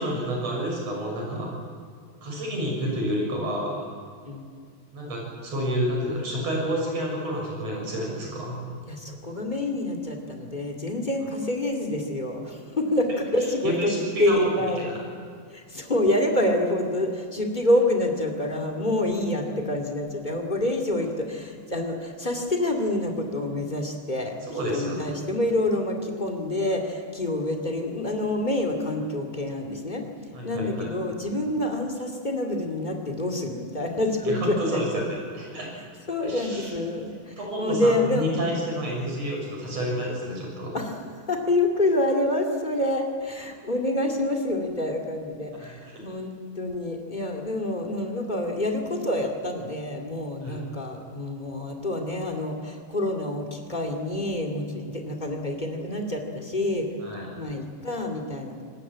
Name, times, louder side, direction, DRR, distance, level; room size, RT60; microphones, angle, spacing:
voice 1, 0.0-1.5 2.2-3.9 4.9-8.6 13.6-14.5 24.4-25.2 30.3-30.9 34.2-35.7 36.2-36.7 37.4-40.7 45.6-46.1 50.4-50.6 57.0-57.3, equal, 40° right, -1 dB, 7.7 m, -29 dB
voice 2, 8.9-13.9 14.2-14.9 15.5-24.3 24.7-30.1 30.4-35.0 36.1-38.5 40.7-41.0 41.3-56.9 57.3-58.6, left 1 dB, 15° left, 2 dB, 1.7 m, -27 dB
27.0 x 19.5 x 8.8 m, 2.1 s
omnidirectional pair, 4.7 m